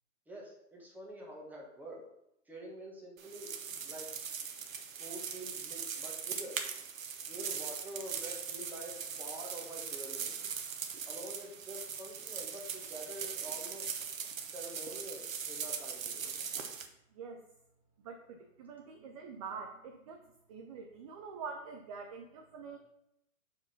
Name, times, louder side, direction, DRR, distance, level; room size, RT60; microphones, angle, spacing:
voice 1, 0.3-2.0 2.5-3.5 3.8-4.1 4.9-6.6 7.3-10.5 11.0-14.1 14.5-16.3, right 1 dB, 5° right, -3 dB, 1.4 m, -47 dB
sound 1, 3.2-16.9, right 7 dB, 70° right, 1.1 m, -40 dB
voice 2, 18.0-20.2 20.5-22.8, right 5 dB, 25° right, 3 dB, 0.5 m, -45 dB
4.8 x 4.6 x 5.7 m, 0.83 s
hypercardioid pair, 130°, 42 cm